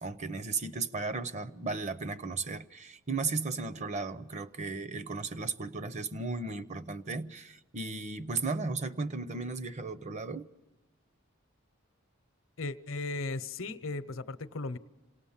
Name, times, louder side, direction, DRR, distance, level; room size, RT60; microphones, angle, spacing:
voice 1, 0.0-10.5, right 4 dB, 35° right, 0.7 m, -35 dB
voice 2, 12.6-14.8, left 3 dB, 75° left, 0.8 m, -36 dB
27.0 x 18.5 x 7.2 m
head